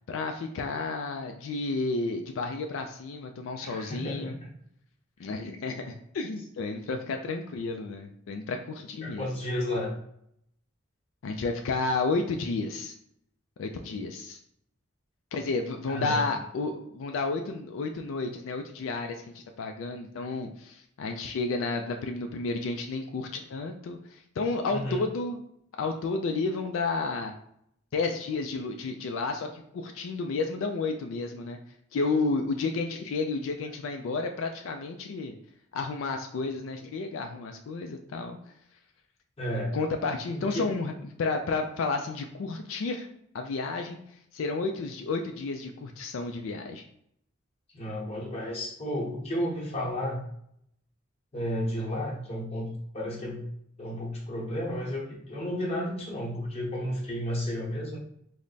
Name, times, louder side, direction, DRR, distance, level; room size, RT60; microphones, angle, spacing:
voice 1, 0.1-4.3 5.2-9.3 11.2-12.9 13.6-14.4 15.3-25.4 25.8-27.3 27.9-31.6 31.9-35.3 35.7-38.4 39.7-40.9 41.2-43.1 43.3-44.0 44.3-46.8, left 3 dB, 85° left, 4 dB, 0.3 m, -31 dB
voice 2, 3.6-4.5 9.0-9.9 15.9-16.3 24.7-25.0 39.4-39.8 40.3-40.7 47.7-50.2 51.3-53.4 53.8-58.0, equal, 30° left, -3 dB, 0.9 m, -32 dB
3.3 x 2.1 x 3.9 m, 0.71 s
head